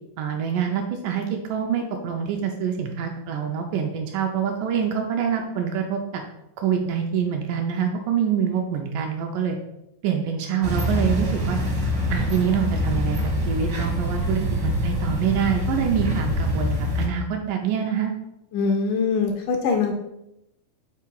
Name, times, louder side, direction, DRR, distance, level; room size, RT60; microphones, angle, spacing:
voice 1, 0.2-6.2 6.6-9.6 10.0-11.6 12.1-13.2 13.5-18.1, right 8 dB, 80° right, 3 dB, 2.0 m, -25 dB
sound 1, 10.6-17.1, equal, 60° right, 1.2 m, -25 dB
voice 2, 18.5-19.9, left 5 dB, 75° left, 2 dB, 2.0 m, -23 dB
5.8 x 4.3 x 4.6 m, 0.86 s
omnidirectional pair, 4.2 m